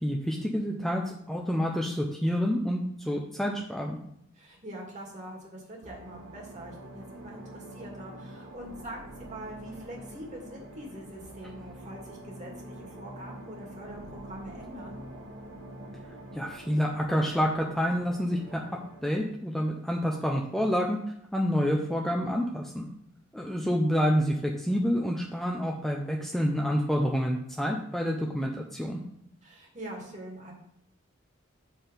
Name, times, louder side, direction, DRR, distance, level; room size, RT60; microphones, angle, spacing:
voice 1, 0.0-4.0 16.3-18.6 19.0-21.0 21.3-22.9 23.3-29.0, equal, ahead, -1 dB, 0.6 m, -28 dB
voice 2, 4.3-15.0 29.4-30.5, right 1 dB, 35° right, -1 dB, 2.1 m, -44 dB
sound 1, 5.8-19.2, right 1 dB, 85° right, 1.5 m, -46 dB
7.7 x 4.5 x 5.1 m, 0.74 s
head